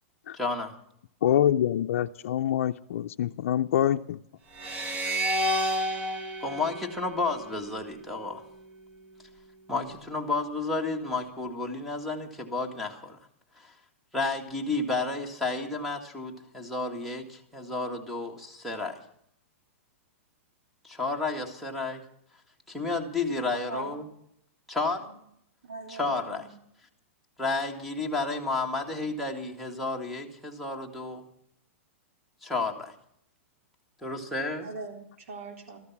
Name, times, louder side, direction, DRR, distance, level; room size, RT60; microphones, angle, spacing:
voice 1, 0.4-0.7 6.4-8.4 9.7-13.2 13.6-13.7 14.1-19.0 20.8-22.0 22.7-24.0 24.7-25.0 25.9-26.5 27.4-31.2 32.4-32.9 34.0-34.7, left 3 dB, ahead, 1.8 m, -31 dB
voice 2, 1.2-4.2, left 11 dB, 70° left, 0.5 m, -25 dB
sound 1, 4.5-7.8, equal, 20° right, 1.5 m, -30 dB
voice 3, 25.6-26.5 34.6-35.8, right 3 dB, 70° right, 4.0 m, -41 dB
13.5 x 13.5 x 5.9 m
hypercardioid pair, 150°, 7 cm